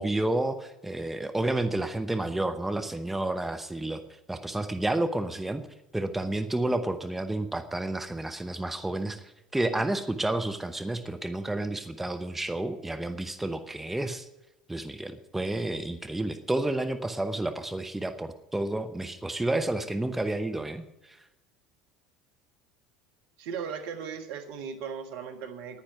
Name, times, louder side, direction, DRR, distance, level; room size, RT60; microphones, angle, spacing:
voice 1, 0.0-4.0 4.3-5.6 5.9-9.2 9.5-14.3 14.7-21.2, right 2 dB, 10° right, 8 dB, 1.0 m, -30 dB
voice 2, 23.4-25.8, right 6 dB, 60° right, 6 dB, 1.5 m, -37 dB
10.5 x 9.8 x 7.8 m, 0.97 s
figure-of-eight pair, 70°, 3 cm